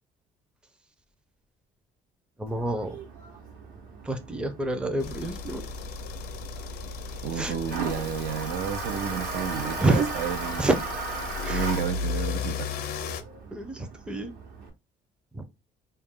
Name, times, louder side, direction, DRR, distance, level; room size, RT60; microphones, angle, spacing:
voice 1, 2.4-3.0 4.0-5.7 7.3-7.6 9.8-10.1 10.6-10.8 11.4-11.7 13.5-14.3 15.3-15.4, right 2 dB, 5° right, 0.4 m, -27 dB
Toilet flush, 2.5-14.7, right 3 dB, 60° right, 0.9 m, -38 dB
sound 1, 5.0-13.2, left 4 dB, 65° left, 0.5 m, -35 dB
voice 2, 7.2-10.6 11.5-12.7, right 8 dB, 80° right, 0.6 m, -31 dB
2.3 x 2.2 x 3.5 m
cardioid pair, 110°, 17 cm